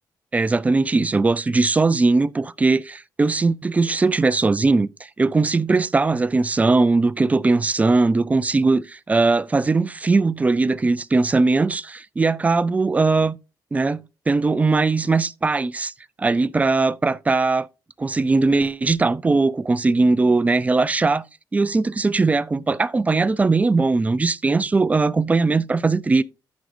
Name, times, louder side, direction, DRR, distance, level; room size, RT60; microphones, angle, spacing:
voice 1, 0.3-13.4 13.7-15.9 16.2-17.7 18.0-21.3 21.5-26.2, right 3 dB, 20° right, 0.4 m, -20 dB
12.5 x 6.2 x 2.6 m
cardioid pair, 125°, 8 cm